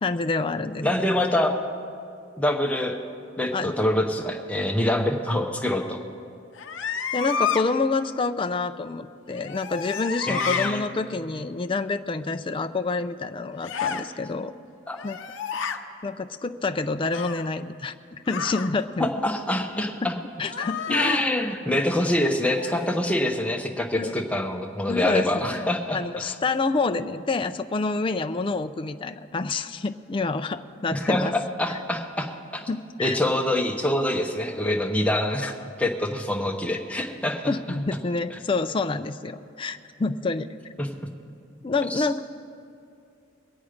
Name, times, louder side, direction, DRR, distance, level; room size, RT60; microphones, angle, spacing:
voice 1, 0.0-0.9 3.5-3.8 7.1-14.5 15.0-15.2 16.0-19.1 20.0-20.1 20.4-21.2 23.9-24.2 24.9-31.3 31.7-31.8 32.7-33.2 37.5-40.5 41.6-42.2, left 3 dB, 25° left, 9 dB, 0.4 m, -28 dB
voice 2, 0.8-1.6 2.4-3.0 3.4-6.0 10.3-10.8 14.9-15.0 19.0-20.2 20.9-26.4 30.9-32.7 33.0-37.5 40.8-40.9 41.9-42.1, left 1 dB, 5° left, 1 dB, 0.9 m, -25 dB
sound 1, 6.5-7.6 9.3-10.7 13.6-14.1 14.9-15.8 17.1-17.5 18.3-18.7 20.5-21.3 22.5-23.0, left 6 dB, 65° left, 0.7 m, -30 dB
22.5 x 8.3 x 5.1 m, 2.5 s
head